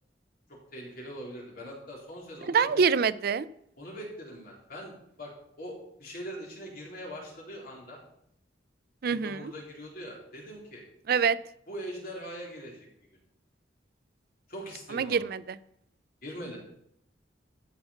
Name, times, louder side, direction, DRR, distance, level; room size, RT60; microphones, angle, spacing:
voice 1, 0.7-2.8 3.8-5.3 5.6-8.0 9.1-10.8 11.7-12.9 14.5-15.3 16.2-16.6, equal, 55° left, -2 dB, 3.4 m, -42 dB
voice 2, 2.5-3.5 9.0-9.5 11.1-11.4 14.9-15.6, right 6 dB, 60° right, 17 dB, 0.4 m, -25 dB
13.5 x 5.8 x 5.6 m, 0.74 s
head